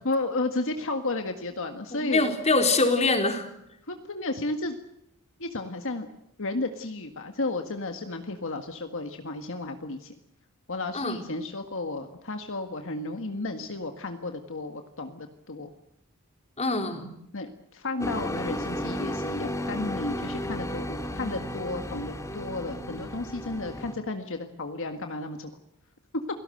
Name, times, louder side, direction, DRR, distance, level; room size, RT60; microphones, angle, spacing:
voice 1, 0.1-2.2 3.9-4.8 5.4-6.1 6.4-10.2 10.7-15.7 17.3-25.6, left 2 dB, 65° left, 6 dB, 1.8 m, -33 dB
voice 2, 1.9-3.5 10.9-11.2 16.6-17.1, left 3 dB, 30° left, 5 dB, 3.8 m, -24 dB
sound 1, 18.0-23.9, equal, 15° left, 2.8 m, -33 dB
28.5 x 18.5 x 7.8 m, 0.80 s
head